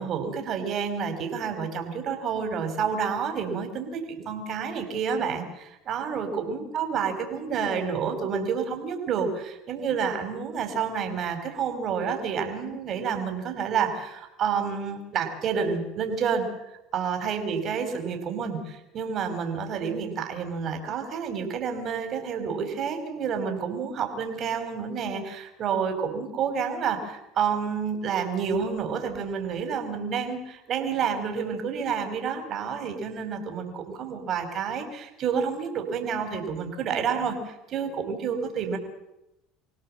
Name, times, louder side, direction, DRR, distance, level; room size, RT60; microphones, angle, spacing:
voice 1, 0.0-16.5 16.9-38.8, right 6 dB, 50° right, 6 dB, 5.0 m, -29 dB
26.5 x 17.0 x 7.6 m, 0.90 s
supercardioid pair, 95°, 0 cm